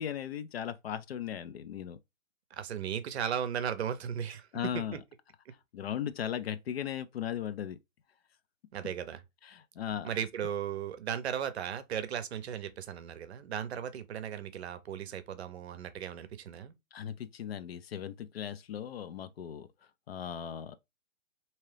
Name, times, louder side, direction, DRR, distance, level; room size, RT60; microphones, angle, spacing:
voice 1, 0.0-2.0 4.5-5.0 5.7-7.8 9.4-10.1 16.9-19.7 20.1-20.8, left 9 dB, 55° left, 0.5 m, -37 dB
voice 2, 2.5-4.8 8.7-9.2 10.0-16.7, right 8 dB, 55° right, 0.7 m, -36 dB
3.6 x 2.9 x 3.2 m
hypercardioid pair, 135°, 39 cm